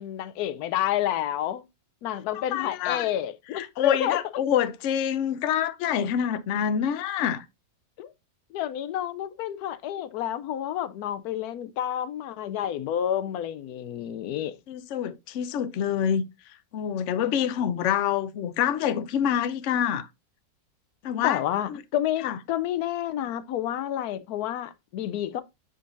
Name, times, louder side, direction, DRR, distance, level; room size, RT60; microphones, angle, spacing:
voice 1, 0.0-1.6 2.0-4.2 8.0-8.1 8.5-14.5 21.2-25.4, left 11 dB, 85° left, 1.1 m, -29 dB
voice 2, 2.3-3.1 3.5-7.5 14.7-16.2 16.7-20.1 21.0-21.4 22.2-22.4, left 9 dB, 65° left, 0.9 m, -26 dB
10.5 x 3.8 x 2.5 m
omnidirectional pair, 1.6 m